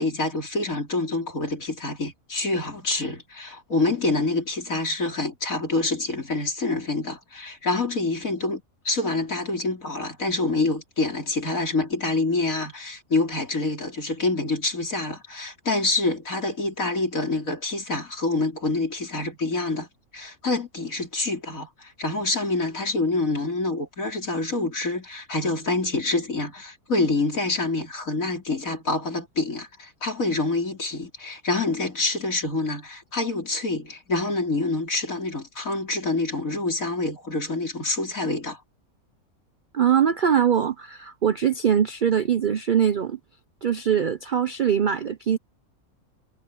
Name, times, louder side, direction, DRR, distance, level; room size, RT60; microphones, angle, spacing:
voice 1, 0.0-19.9 20.1-38.6, left 2 dB, 65° left, 4.5 m, -26 dB
voice 2, 39.7-43.2 43.6-45.4, right 8 dB, 55° right, 0.5 m, -22 dB
omnidirectional pair, 1.5 m